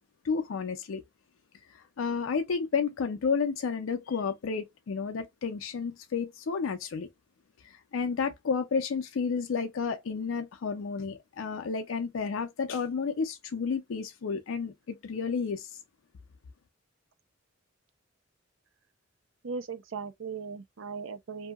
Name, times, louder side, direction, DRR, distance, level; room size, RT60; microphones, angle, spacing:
voice 1, 0.2-1.0 2.0-7.1 7.6-15.7, left 5 dB, 80° left, 0.4 m, -31 dB
voice 2, 19.4-21.5, right 5 dB, 80° right, 0.6 m, -38 dB
2.7 x 2.7 x 2.3 m
head